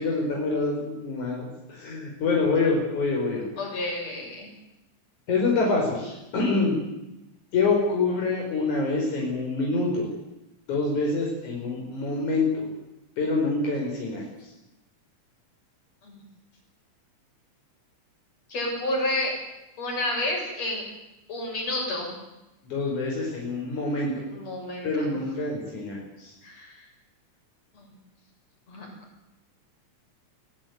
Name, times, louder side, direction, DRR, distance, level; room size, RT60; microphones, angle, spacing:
voice 1, 0.0-3.5 5.3-6.8 7.5-10.1 10.7-12.7 13.2-14.5 22.7-24.3 24.8-26.3, left 3 dB, 85° left, -1 dB, 6.3 m, -26 dB
voice 2, 3.6-4.5 16.0-16.2 18.5-19.3 19.8-20.9 21.3-22.1 24.3-25.1 26.4-26.9 27.7-27.9 28.7-28.9, left 1 dB, 60° left, 0 dB, 8.5 m, -30 dB
23.0 x 18.0 x 9.5 m, 0.95 s
omnidirectional pair, 3.3 m